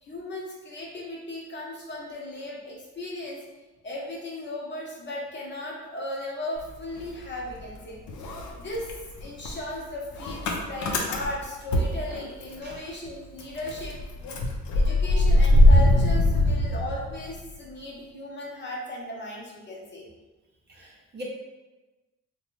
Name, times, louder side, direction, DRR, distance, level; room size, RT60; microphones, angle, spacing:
voice 1, 0.0-3.4 3.8-14.3 14.7-20.1, left 1 dB, 35° left, -4 dB, 0.8 m, -36 dB
Motor vehicle (road) / Engine starting, 6.6-7.8 8.1-12.7 13.1-13.2 13.4-17.5, left 1 dB, 75° left, 0.6 m, -22 dB
voice 2, 20.8-21.2, left 1 dB, 35° right, -3 dB, 0.7 m, -42 dB
2.9 x 2.3 x 3.1 m, 1.2 s
cardioid pair, 90°, 30 cm